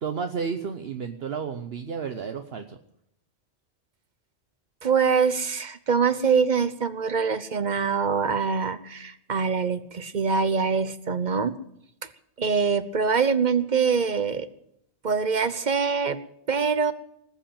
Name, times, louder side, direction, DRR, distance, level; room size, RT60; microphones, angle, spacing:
voice 1, 0.0-2.8, right 6 dB, 60° right, 7 dB, 1.2 m, -32 dB
voice 2, 4.8-11.5 12.4-14.5 15.0-16.2 16.5-16.9, right 5 dB, 45° right, 13 dB, 1.0 m, -24 dB
20.0 x 7.7 x 8.8 m, 0.73 s
omnidirectional pair, 1.2 m